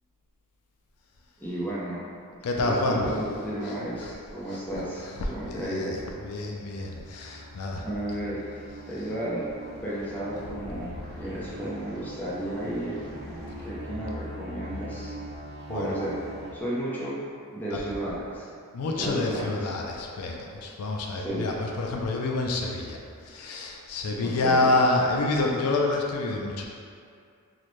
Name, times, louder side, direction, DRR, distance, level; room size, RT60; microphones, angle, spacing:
voice 1, 1.4-2.1 2.5-6.0 7.8-8.4 8.9-9.5 9.8-13.0 13.6-15.1 15.7-16.2 16.5-17.2 17.5-18.5 18.9-19.7 21.1-21.5 24.2-24.7, right 1 dB, 10° left, -8 dB, 0.6 m, -33 dB
voice 2, 2.4-3.2 3.6-3.7 4.0-4.1 4.5-4.6 5.0-7.9 10.8-10.9 15.7-16.0 17.7-17.8 18.7-23.0 23.2-26.6, left 2 dB, 75° left, 0 dB, 0.4 m, -28 dB
sound 1, 5.3-16.6, equal, 45° right, 0.7 m, -42 dB
3.9 x 2.1 x 3.1 m, 2.3 s
head